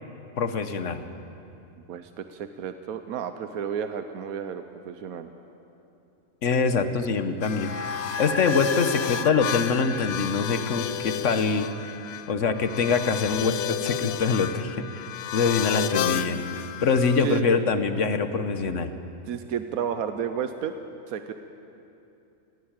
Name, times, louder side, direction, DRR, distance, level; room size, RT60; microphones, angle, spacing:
voice 1, 0.4-1.0 6.4-7.8 8.2-11.7 12.3-15.1 15.3-16.4 16.8-18.9, left 5 dB, 60° left, 9 dB, 1.4 m, -24 dB
voice 2, 1.9-5.3 17.2-17.5 19.3-20.7 21.1-21.3, right 8 dB, 85° right, 8 dB, 1.2 m, -32 dB
sound 1, 7.4-17.4, left 11 dB, 90° left, 1.1 m, -32 dB
sound 2, 7.5-12.2, left 3 dB, 15° left, 0.5 m, -36 dB
19.5 x 16.0 x 8.9 m, 2.8 s
omnidirectional pair, 1.5 m